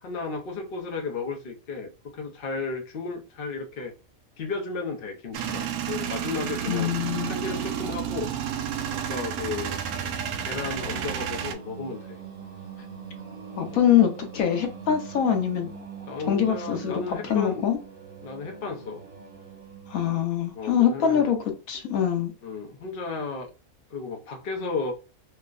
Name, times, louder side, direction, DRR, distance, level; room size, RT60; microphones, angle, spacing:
voice 1, 0.0-3.9 4.4-6.9 7.3-8.3 8.9-9.8 10.4-12.2 13.7-13.8 16.0-17.7 18.2-19.0 20.5-21.3 22.4-23.5 23.9-24.9, left 4 dB, 50° left, 0.8 m, -34 dB
Male speech man speaking / Vehicle / Engine starting, 5.3-11.5, right 8 dB, 85° right, 1.0 m, -31 dB
voice 2, 6.7-7.4 13.6-15.7 16.3-17.8 19.9-21.4 21.7-22.3, left 9 dB, 80° left, 1.2 m, -24 dB
Singing, 9.1-20.3, right 6 dB, 55° right, 1.8 m, -43 dB
4.4 x 2.1 x 2.3 m
omnidirectional pair, 1.5 m